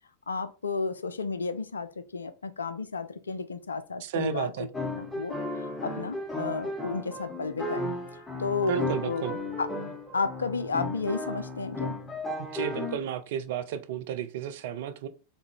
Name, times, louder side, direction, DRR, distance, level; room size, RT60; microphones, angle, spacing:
voice 1, 0.3-4.5 4.9-9.7 10.1-11.9, left 4 dB, 70° left, 0.4 m, -32 dB
voice 2, 4.0-4.7 8.7-9.3 12.4-15.1, right 9 dB, 55° right, 0.4 m, -33 dB
sound 1, 4.7-13.0, left 1 dB, 5° left, 0.8 m, -34 dB
3.5 x 2.2 x 3.2 m
figure-of-eight pair, 90°, 0 cm